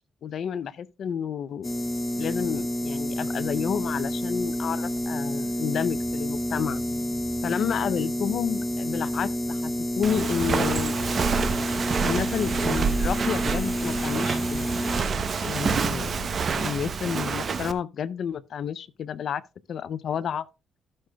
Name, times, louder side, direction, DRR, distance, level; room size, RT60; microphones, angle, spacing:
voice 1, 0.2-1.7 2.2-6.8 7.4-11.0 12.0-14.7 15.4-19.4 19.7-20.5, left 8 dB, 60° left, 0.5 m, -30 dB
sound 1, 1.6-15.0, equal, 20° left, 0.9 m, -29 dB
Walk footsteps, 10.0-17.7, right 5 dB, 45° right, 0.8 m, -27 dB
15.0 x 6.5 x 2.3 m
cardioid pair, 90°, 0 cm